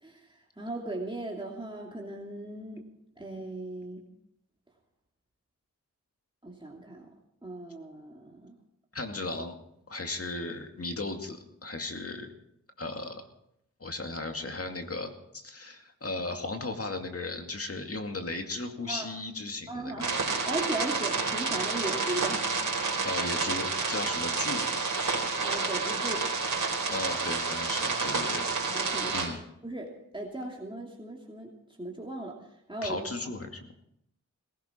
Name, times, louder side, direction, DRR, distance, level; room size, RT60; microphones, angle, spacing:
voice 1, 0.0-2.8 3.2-4.0 6.4-7.1 7.4-8.6 18.9-19.1 19.7-20.2 20.5-22.6 25.4-26.2 28.7-29.2 29.6-31.5 31.8-32.4 32.7-33.0, right 2 dB, 15° right, -2 dB, 2.7 m, -37 dB
voice 2, 8.9-9.5 9.9-12.3 12.8-13.3 13.8-20.1 23.0-24.7 26.9-28.5 29.1-29.4 32.8-33.9, left 2 dB, 45° left, 4 dB, 2.3 m, -36 dB
sound 1, 20.0-29.3, right 4 dB, 75° right, 4.3 m, -29 dB
19.0 x 17.0 x 4.5 m, 0.76 s
wide cardioid pair, 70°, 32 cm